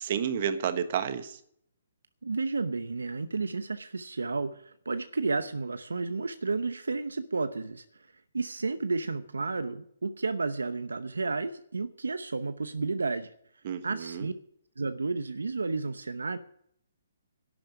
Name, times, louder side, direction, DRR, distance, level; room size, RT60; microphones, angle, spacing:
voice 1, 0.0-1.4 13.6-14.3, right 8 dB, 50° right, 10 dB, 1.4 m, -31 dB
voice 2, 2.2-7.8 8.3-13.3 13.8-14.3 14.8-16.4, right 3 dB, 85° right, 11 dB, 0.8 m, -32 dB
11.5 x 8.7 x 9.4 m, 0.68 s
hypercardioid pair, 140°, 0 cm